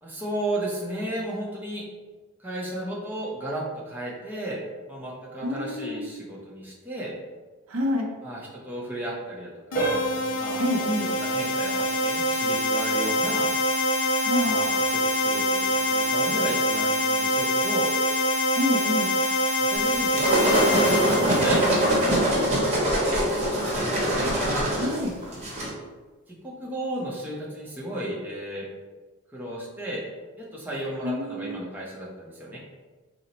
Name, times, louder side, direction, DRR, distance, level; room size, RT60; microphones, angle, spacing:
voice 1, 0.0-1.8 2.4-4.6 4.9-7.1 8.2-9.9 10.4-10.7 11.0-13.5 14.4-17.9 19.6-21.9 22.9-24.3 26.3-28.7 29.3-30.0 30.4-32.6, right 1 dB, 10° right, -5 dB, 0.6 m, -34 dB
voice 2, 5.4-6.2 7.7-8.1 10.6-11.1 14.2-14.6 18.5-19.1 24.8-25.1 31.0-31.6, left 1 dB, 70° right, 2 dB, 0.5 m, -28 dB
sound 1, 9.7-22.4, left 1 dB, 55° left, 0.4 m, -25 dB
sound 2, 9.7-20.4 20.8-21.0 21.6-21.7 22.2-22.3, right 1 dB, 35° left, 0.8 m, -36 dB
sound 3, 19.8-25.7, right 1 dB, 30° right, 0.9 m, -23 dB
4.2 x 2.1 x 3.9 m, 1.3 s
head